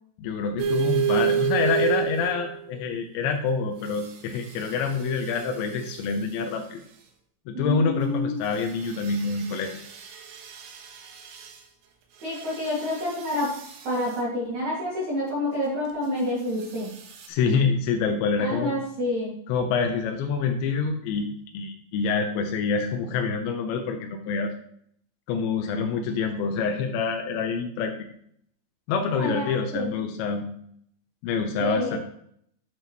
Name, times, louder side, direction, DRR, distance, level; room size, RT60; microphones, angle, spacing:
voice 1, 0.2-6.8 7.5-9.8 17.3-18.7 19.5-21.3 21.5-24.5 25.3-28.1 28.9-30.4 31.2-32.0, left 5 dB, 85° left, 4 dB, 3.0 m, -26 dB
sound 1, 0.6-2.7 3.9-6.3 8.4-11.6 12.2-14.2 16.6-17.3, right 9 dB, 85° right, 3.6 m, -31 dB
voice 2, 7.5-8.4 12.2-13.5 13.8-16.9 18.4-19.4 29.1-29.9 31.6-32.0, left 1 dB, 45° right, -7 dB, 3.4 m, -28 dB
9.3 x 8.9 x 3.1 m, 0.67 s
omnidirectional pair, 5.3 m